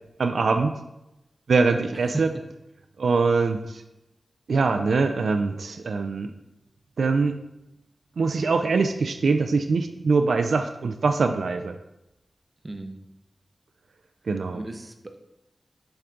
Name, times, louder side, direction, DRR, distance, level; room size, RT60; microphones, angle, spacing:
voice 1, 0.2-0.8 1.5-2.3 3.0-3.8 4.5-6.3 7.0-7.4 8.2-11.7 14.3-14.6, right 4 dB, 85° right, 6 dB, 0.3 m, -23 dB
voice 2, 1.9-2.2 12.6-13.0 14.5-15.2, right 2 dB, 30° right, 6 dB, 0.7 m, -36 dB
6.8 x 3.7 x 3.7 m, 0.92 s
wide cardioid pair, 75°, 0 cm